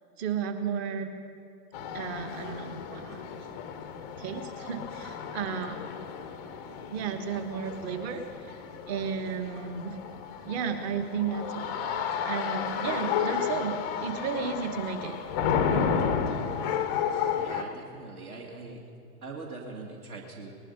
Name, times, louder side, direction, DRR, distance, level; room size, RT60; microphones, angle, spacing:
voice 1, 0.2-1.1 1.9-3.2 4.2-5.8 6.9-8.5 8.9-10.0 10.4-15.2, right 6 dB, 40° right, 7 dB, 1.4 m, -33 dB
sound 1, 1.7-17.6, left 7 dB, 15° left, 0.4 m, -32 dB
voice 2, 17.3-18.8 19.2-20.5, right 3 dB, 65° right, 1 dB, 2.0 m, -42 dB
19.0 x 11.5 x 5.2 m, 2.4 s
figure-of-eight pair, 115°, 47 cm